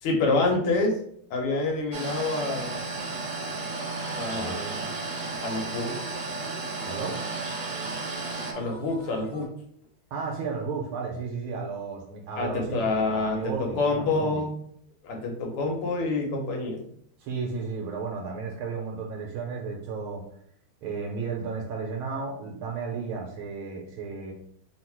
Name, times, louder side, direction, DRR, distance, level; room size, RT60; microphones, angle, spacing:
voice 1, 0.0-1.0 1.3-3.0 4.2-5.0 5.4-5.9 8.6-9.5 12.4-14.6 15.0-16.8, left 3 dB, 80° left, 1 dB, 1.8 m, -27 dB
sound 1, 1.9-8.5, right 3 dB, 60° right, 0.8 m, -33 dB
sound 2, 2.9-9.5, right 1 dB, 20° right, 0.4 m, -44 dB
voice 2, 6.9-7.3 10.1-14.4 17.2-20.2 20.8-24.3, right 5 dB, 75° right, 0 dB, 1.6 m, -33 dB
3.9 x 2.4 x 4.4 m, 0.67 s
omnidirectional pair, 2.4 m